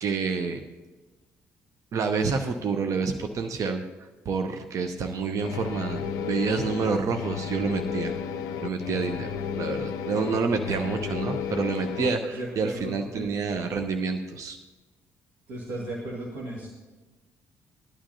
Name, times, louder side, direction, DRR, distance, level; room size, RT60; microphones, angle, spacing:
voice 1, 0.0-0.6 1.9-8.1 8.6-9.3 9.6-14.6, right 4 dB, 45° right, 6 dB, 0.8 m, -28 dB
sound 1, 5.4-12.1, left 7 dB, 60° left, 0.5 m, -33 dB
voice 2, 12.0-13.6 15.5-16.7, right 1 dB, 60° right, -4 dB, 1.9 m, -36 dB
17.5 x 11.0 x 2.7 m, 1.2 s
figure-of-eight pair, 45°, 8 cm